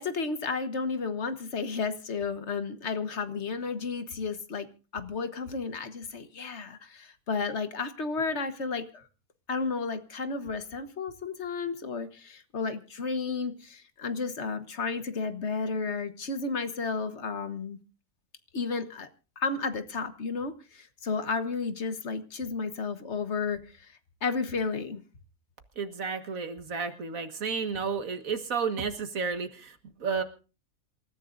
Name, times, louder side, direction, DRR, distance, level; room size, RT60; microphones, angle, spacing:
voice 1, 0.0-4.7 4.9-9.1 9.5-17.8 18.5-19.1 19.4-23.9 24.2-25.0, left 4 dB, 55° left, 10 dB, 1.5 m, -32 dB
voice 2, 25.8-30.2, right 5 dB, 75° right, 7 dB, 2.0 m, -32 dB
27.5 x 14.0 x 2.6 m, 0.34 s
omnidirectional pair, 1.4 m